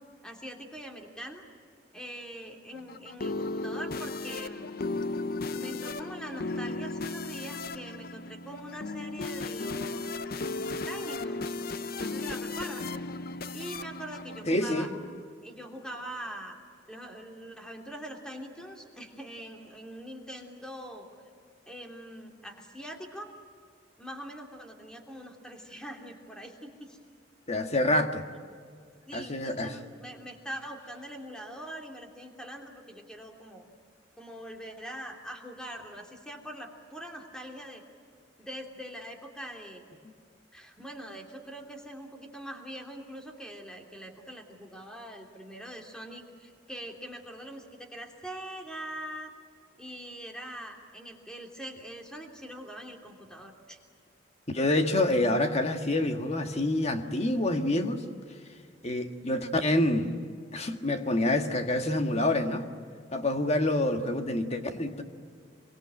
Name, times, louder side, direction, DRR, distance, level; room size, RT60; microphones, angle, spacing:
voice 1, 0.2-1.4 1.9-4.7 5.5-10.0 10.3-11.5 12.0-12.9 13.5-14.9 15.4-16.5 16.9-21.1 21.6-23.3 24.0-27.0 29.1-33.6 34.2-37.8 38.4-39.8 40.5-49.3 49.8-53.8 54.7-54.8, equal, 5° left, 3.0 m, -43 dB
sound 1, 2.7-15.2, left 3 dB, 55° left, 0.7 m, -35 dB
voice 2, 14.5-14.9 27.5-28.2 29.1-29.7 54.5-58.0 58.8-60.1 60.5-62.7 63.1-65.0, left 1 dB, 35° left, 1.7 m, -27 dB
25.5 x 24.0 x 8.9 m
head